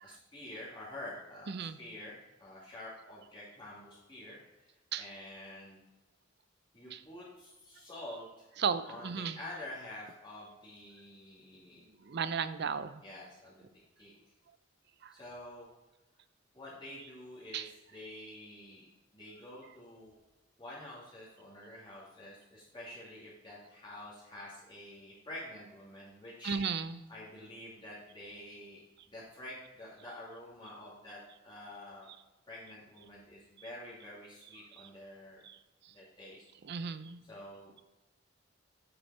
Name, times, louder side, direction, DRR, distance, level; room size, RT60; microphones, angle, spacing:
voice 1, 0.0-5.8 6.7-8.5 8.8-11.9 13.0-13.7 14.0-14.1 15.1-15.7 16.5-18.9 19.1-20.1 20.6-26.6 27.1-28.8 29.1-32.1 32.5-35.4 35.9-36.5 37.2-37.8, left 1 dB, 25° left, -7 dB, 2.3 m, -48 dB
voice 2, 1.5-1.8 4.9-5.1 6.9-7.0 8.6-9.4 12.0-13.0 15.0-15.1 17.5-17.7 26.4-27.0 33.6-33.7 34.8-34.9 35.4-35.6 36.6-37.2, right 6 dB, 60° right, 13 dB, 0.5 m, -35 dB
8.0 x 6.7 x 4.1 m, 1.1 s
head